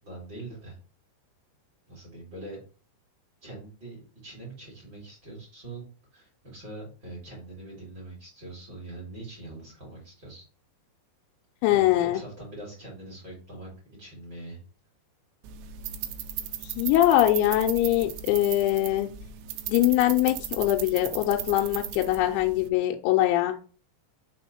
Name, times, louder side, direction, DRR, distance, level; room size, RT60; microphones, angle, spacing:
voice 1, 0.0-0.8 1.9-2.6 3.4-5.8 6.1-10.4 11.7-13.7 14.0-14.6, right 2 dB, 30° right, -3 dB, 2.3 m, -43 dB
voice 2, 11.6-12.2 16.8-19.1 19.7-23.6, left 14 dB, 90° left, 4 dB, 3.0 m, -23 dB
sound 1, 15.4-22.7, right 10 dB, 85° right, 2.4 m, -37 dB
6.2 x 3.7 x 4.2 m, 0.38 s
omnidirectional pair, 5.3 m